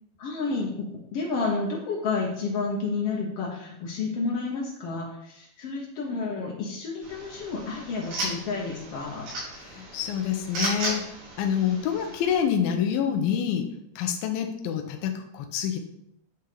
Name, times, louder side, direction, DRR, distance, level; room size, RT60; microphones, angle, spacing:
voice 1, 0.2-0.8 1.1-9.3, left 4 dB, 75° left, -3 dB, 1.4 m, -30 dB
sound 1, 7.0-12.4, right 2 dB, 70° right, 4.5 m, -35 dB
voice 2, 9.7-15.8, left 8 dB, 90° left, 4 dB, 2.5 m, -27 dB
9.9 x 3.4 x 5.0 m, 0.78 s
omnidirectional pair, 4.2 m